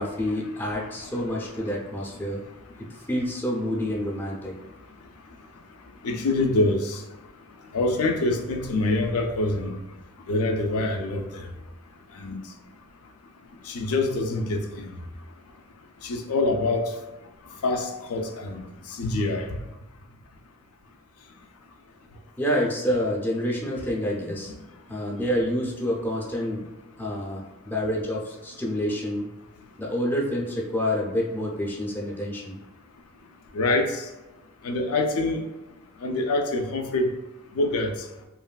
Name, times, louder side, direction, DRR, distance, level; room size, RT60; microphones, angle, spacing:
voice 1, 0.0-2.4 2.8-4.5 22.4-24.5 24.9-26.7 27.0-29.3 29.8-32.6, equal, 10° left, -3 dB, 0.4 m, -28 dB
voice 2, 6.0-7.0 7.7-9.8 10.3-11.4 12.2-12.4 13.7-14.9 16.0-16.9 17.6-18.6 19.0-19.5 33.5-33.9 34.6-35.4 36.0-37.1 37.6-37.9, left 2 dB, 85° left, 4 dB, 0.4 m, -25 dB
2.9 x 2.4 x 2.2 m, 1.0 s
head